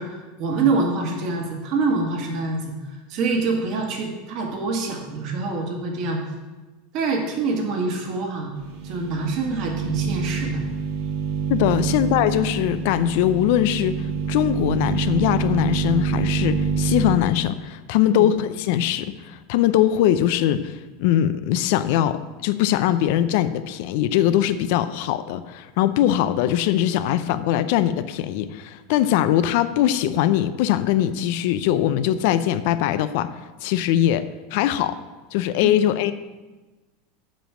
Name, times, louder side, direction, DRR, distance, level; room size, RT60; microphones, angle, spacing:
voice 1, 0.0-6.2 6.9-8.5 8.8-10.6 11.8-11.9 18.1-18.3, right 3 dB, 50° right, 1 dB, 2.0 m, -25 dB
sound 1, 8.6-17.2, right 5 dB, 70° right, 1.4 m, -26 dB
voice 2, 11.5-14.0 14.3-33.3 33.6-35.0 35.3-36.1, left 12 dB, 65° left, 12 dB, 0.5 m, -21 dB
7.6 x 5.2 x 7.3 m, 1.2 s
supercardioid pair, 135°, 0 cm